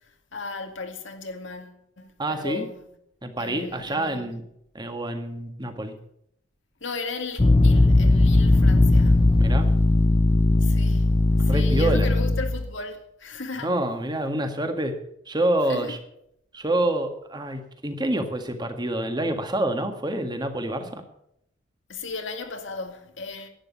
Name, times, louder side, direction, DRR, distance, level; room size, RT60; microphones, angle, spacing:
voice 1, 0.3-2.9 3.4-4.3 6.8-9.3 10.6-13.7 15.7-16.0 21.9-23.5, left 3 dB, 65° left, 2.2 m, -36 dB
voice 2, 2.2-2.7 3.2-4.4 4.7-5.9 9.4-9.7 11.5-12.1 13.6-15.0 15.3-16.0 16.5-21.0, right 1 dB, 20° right, 1.7 m, -27 dB
sound 1, 7.4-12.7, left 2 dB, 25° left, 0.6 m, -18 dB
11.5 x 9.6 x 8.3 m
head